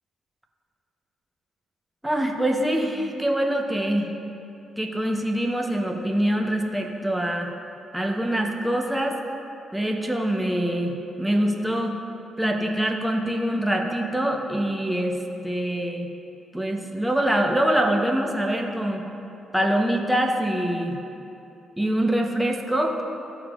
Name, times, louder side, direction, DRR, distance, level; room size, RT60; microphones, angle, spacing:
voice 1, 2.0-4.1 4.8-7.5 7.9-9.2 9.7-12.0 12.4-15.2 15.4-16.1 16.5-19.0 19.5-21.0 21.8-23.0, right 1 dB, 5° right, 1 dB, 1.0 m, -24 dB
13.0 x 4.6 x 2.5 m, 2.8 s
hypercardioid pair, 45°, 0 cm